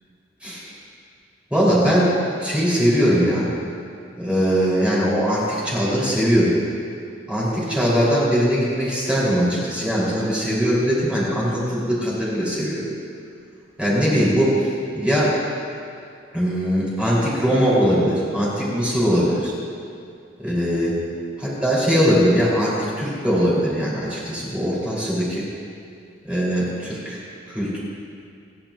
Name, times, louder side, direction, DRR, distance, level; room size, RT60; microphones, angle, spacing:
voice 1, 1.5-3.5 4.2-6.6 7.3-12.8 13.8-14.5 14.9-15.3 16.3-19.5 20.4-20.9 21.4-25.4 26.2-27.2 27.5-27.8, equal, 5° right, -8 dB, 3.8 m, -20 dB
29.5 x 10.0 x 2.6 m, 2.4 s
head